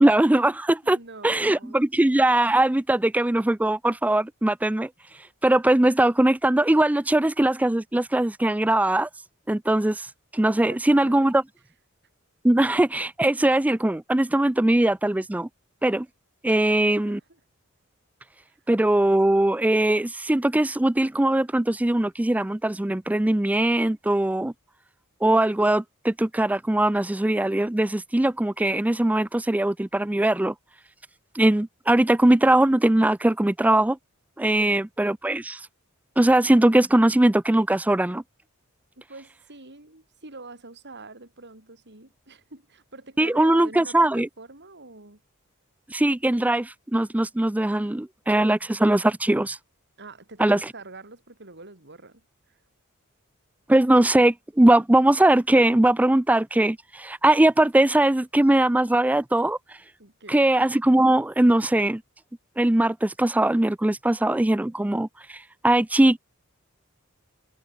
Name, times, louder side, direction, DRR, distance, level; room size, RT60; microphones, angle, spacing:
voice 1, 0.0-1.0 1.2-4.9 5.4-9.1 9.5-10.1 10.3-11.4 12.4-15.5 15.8-16.1 16.4-17.2 18.7-24.5 25.2-30.5 31.3-34.0 34.4-35.6 36.2-38.2 43.2-44.3 45.9-49.6 50.4-50.6 53.7-59.6 60.3-62.0 62.6-66.2, right 1 dB, 5° right, 0.4 m, -21 dB
voice 2, 0.8-1.8 10.5-11.3 16.5-17.4 18.4-18.6 39.1-45.2 50.0-52.6 60.0-60.4, right 3 dB, 55° right, 6.9 m, -45 dB
head